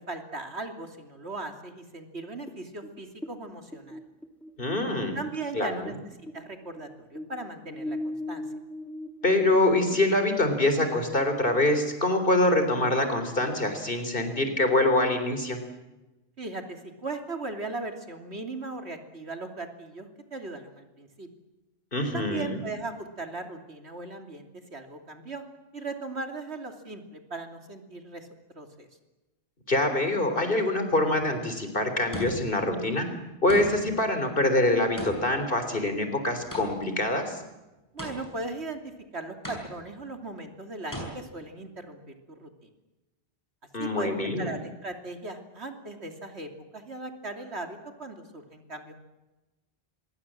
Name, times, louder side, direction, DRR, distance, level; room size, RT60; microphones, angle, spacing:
voice 1, 0.1-4.0 5.1-5.9 6.3-8.4 16.4-21.3 22.1-25.4 25.7-28.3 28.5-28.9 37.9-38.8 39.1-42.0 42.4-42.7 43.8-44.1 44.4-49.0, right 3 dB, 75° right, 5 dB, 3.2 m, -38 dB
sound 1, 2.5-6.0 6.3-10.4, left 1 dB, ahead, 2.3 m, -39 dB
voice 2, 4.6-5.2 5.5-5.7 9.2-15.6 21.9-22.6 29.7-33.1 33.4-37.4 43.7-44.5, left 1 dB, 55° left, 7 dB, 3.8 m, -25 dB
sound 2, 32.1-32.7 33.5-34.0 35.0-37.0 38.0-38.6 39.4-40.1 40.9-41.0, right 1 dB, 15° left, 8.1 m, -37 dB
26.0 x 22.0 x 7.6 m, 1.0 s
omnidirectional pair, 1.1 m